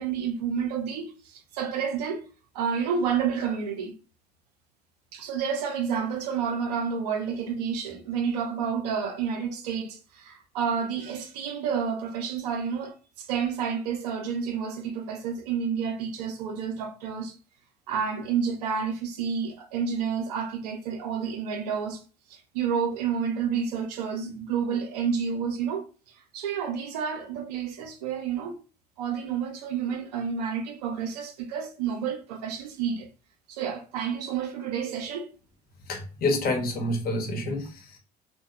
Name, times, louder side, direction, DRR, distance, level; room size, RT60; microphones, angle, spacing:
voice 1, 0.0-2.2 2.5-3.9 5.1-17.4 17.9-22.0 22.3-25.8 26.3-28.6 29.0-33.1 33.5-35.3, right 7 dB, 80° right, 0.6 m, -30 dB
voice 2, 35.8-38.0, left 2 dB, 45° left, 0.9 m, -28 dB
2.8 x 2.2 x 2.3 m
hypercardioid pair, 60°, 20 cm